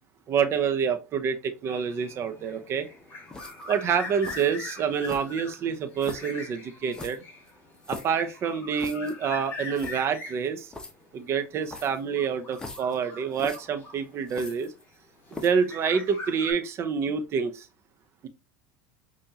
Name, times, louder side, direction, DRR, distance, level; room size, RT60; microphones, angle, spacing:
voice 1, 0.3-2.9 3.7-7.2 7.9-10.7 11.1-14.7 15.3-17.7, right 6 dB, 40° right, 0.8 m, -27 dB
sound 1, 1.7-14.5 15.3-16.5, left 3 dB, 30° left, 2.1 m, -42 dB
sound 2, 3.3-3.7 4.2-4.5 5.0-5.5 6.0-6.3 6.9-8.2 8.8-9.1 9.5-9.6 9.7-10.0 10.7-10.9 11.6-12.0 12.5-13.0 13.3-13.6 14.3-15.0 15.3-15.6, left 2 dB, 10° left, 1.0 m, -40 dB
5.3 x 2.6 x 2.8 m
supercardioid pair, 105°, 7 cm